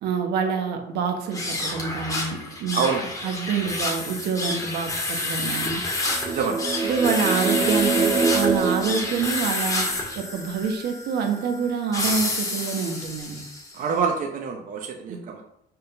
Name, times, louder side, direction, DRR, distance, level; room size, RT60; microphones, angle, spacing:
voice 1, 0.0-2.8 3.2-5.8 6.8-9.8 10.1-13.4 15.1-15.4, right 6 dB, 75° right, 5 dB, 1.2 m, -27 dB
sound 1, 1.3-13.8, left 2 dB, 20° left, 1.8 m, -29 dB
voice 2, 2.7-3.1 6.3-6.6 13.7-15.4, right 6 dB, 50° right, 1 dB, 0.9 m, -26 dB
sound 2, 6.1-9.9, right 4 dB, 15° right, 0.6 m, -25 dB
5.7 x 3.7 x 5.8 m, 0.75 s
cardioid pair, 110°, 17 cm